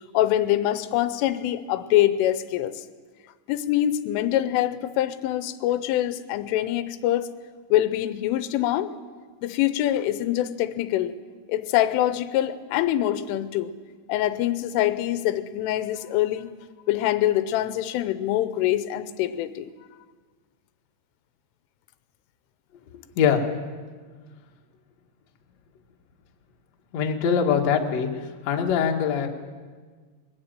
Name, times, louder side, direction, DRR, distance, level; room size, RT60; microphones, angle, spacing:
voice 1, 0.1-2.8 3.5-7.3 7.7-8.9 9.4-11.1 11.5-13.7 14.1-16.5 16.9-19.7, left 13 dB, 90° left, 12 dB, 3.3 m, -24 dB
voice 2, 26.9-28.1 28.4-29.3, left 7 dB, 65° left, 2 dB, 1.6 m, -22 dB
22.0 x 13.5 x 9.0 m, 1.5 s
omnidirectional pair, 5.6 m